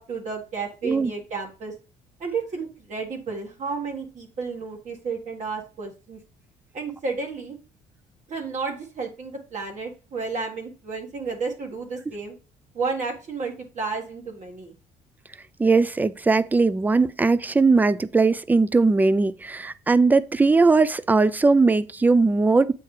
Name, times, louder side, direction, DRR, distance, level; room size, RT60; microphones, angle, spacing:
voice 1, 0.0-1.7 2.2-6.2 6.7-7.6 8.3-12.3 12.7-14.7, right 4 dB, 45° right, 1.7 m, -32 dB
voice 2, 15.6-22.7, right 3 dB, 10° right, 0.3 m, -19 dB
7.9 x 4.5 x 3.3 m
cardioid pair, 110°, 17 cm